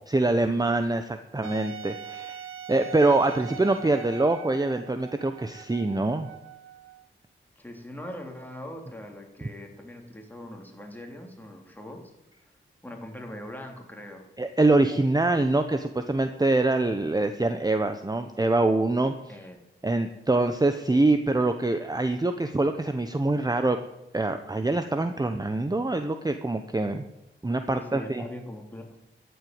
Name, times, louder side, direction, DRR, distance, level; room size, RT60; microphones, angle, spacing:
voice 1, 0.1-2.4 2.7-6.3 14.4-19.4 19.8-23.8 24.1-27.0 27.4-28.2, right 2 dB, 20° right, 8 dB, 1.0 m, -24 dB
Wind instrument woodwind instrument, 1.4-7.1, right 9 dB, 85° right, 1.4 m, -42 dB
voice 2, 7.6-12.1 12.8-14.3 19.3-19.6 27.7-28.9, left 1 dB, 10° left, 2 dB, 3.4 m, -41 dB
14.0 x 8.0 x 9.5 m, 0.91 s
cardioid pair, 70°, 21 cm